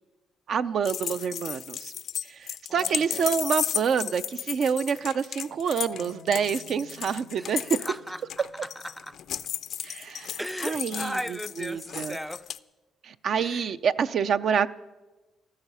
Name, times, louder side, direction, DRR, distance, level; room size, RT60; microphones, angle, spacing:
voice 1, 0.5-1.9 2.2-7.9 9.8-12.2 13.0-14.7, right 7 dB, 60° right, 0.5 m, -27 dB
sound 1, 0.8-12.6, left 9 dB, 65° left, 0.4 m, -34 dB
voice 2, 2.7-3.4 7.4-7.5 7.8-9.2 10.4-12.5 13.3-13.7, equal, ahead, 0.4 m, -37 dB
sound 2, 5.9-11.1, left 5 dB, 90° right, 1.8 m, -55 dB
13.5 x 13.5 x 5.5 m
cardioid pair, 90°, 0 cm